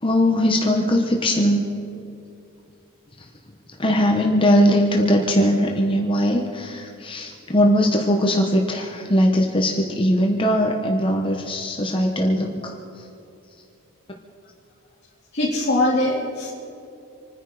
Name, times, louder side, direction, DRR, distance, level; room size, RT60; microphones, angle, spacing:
voice 1, 0.0-1.6 3.8-12.7, equal, 25° left, 1 dB, 1.1 m, -20 dB
voice 2, 15.3-16.5, left 1 dB, 55° left, -6 dB, 2.2 m, -21 dB
26.5 x 10.0 x 5.0 m, 2.6 s
head